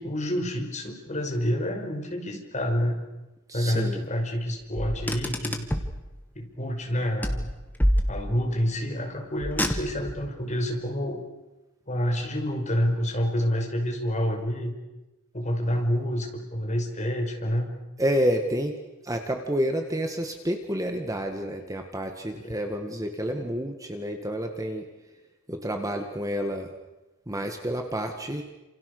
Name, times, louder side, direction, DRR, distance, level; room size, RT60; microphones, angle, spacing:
voice 1, 0.0-3.0 3.5-5.7 6.4-7.5 8.1-11.2 11.9-14.7 15.3-17.7 22.4-22.5, equal, 30° left, 2 dB, 5.5 m, -28 dB
voice 2, 3.5-4.0 18.0-24.8 25.5-26.7 27.3-28.4, equal, 15° right, 4 dB, 1.9 m, -29 dB
Car, 4.8-6.0 7.2-8.5 9.4-10.2, equal, 10° left, 2.1 m, -27 dB
30.0 x 28.0 x 6.8 m, 1.0 s
head